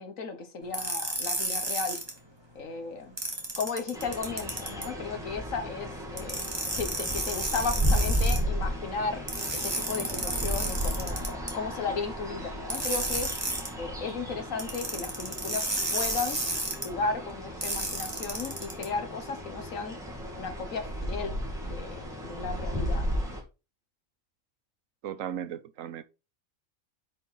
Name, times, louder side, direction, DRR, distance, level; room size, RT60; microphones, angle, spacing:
voice 1, 0.0-2.0 2.6-3.1 3.6-6.4 6.8-9.2 9.5-13.3 13.8-16.4 16.8-20.0 20.4-21.4 21.6-23.0, left 4 dB, 85° left, 1.8 m, -35 dB
sound 1, 0.7-2.1 3.2-4.9 6.2-8.4 9.3-11.5 12.7-13.7 14.6-16.8 17.6-18.8, right 1 dB, 20° right, 2.3 m, -32 dB
sound 2, 3.9-23.4, equal, ahead, 2.7 m, -34 dB
voice 2, 25.0-26.0, right 10 dB, 85° right, 1.2 m, -36 dB
7.9 x 5.4 x 3.9 m
omnidirectional pair, 1.3 m